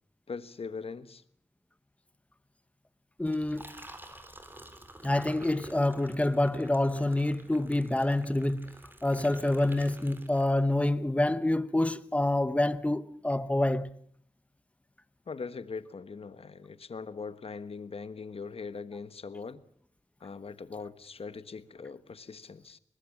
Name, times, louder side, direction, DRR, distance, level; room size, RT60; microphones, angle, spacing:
voice 1, 0.3-1.2 15.3-19.6 20.2-22.8, left 5 dB, 55° left, 1.3 m, -41 dB
voice 2, 3.2-3.9 5.0-8.7 9.0-13.9, left 1 dB, 10° left, 0.9 m, -27 dB
Liquid, 3.2-10.9, right 1 dB, 15° right, 3.3 m, -50 dB
23.0 x 20.0 x 7.3 m
wide cardioid pair, 95°, 12 cm